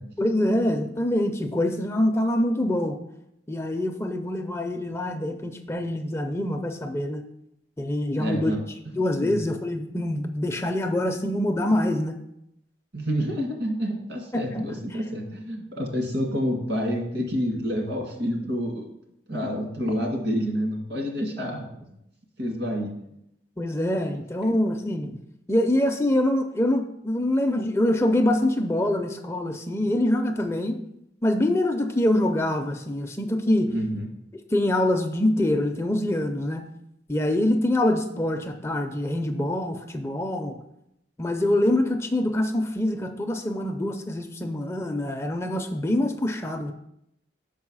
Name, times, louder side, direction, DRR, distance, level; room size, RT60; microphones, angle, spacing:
voice 1, 0.2-3.0 3.5-7.2 7.8-8.5 8.9-12.2 14.3-14.6 23.6-25.2 25.5-30.8 31.2-33.7 34.5-36.7 37.1-40.6 41.2-46.7, left 1 dB, 15° left, 5 dB, 0.4 m, -25 dB
voice 2, 8.2-8.6 9.2-9.4 12.9-18.9 19.3-22.0 22.4-22.9 24.4-24.5 33.7-34.1, equal, 75° right, 1 dB, 1.8 m, -28 dB
5.8 x 4.7 x 6.1 m, 0.80 s
head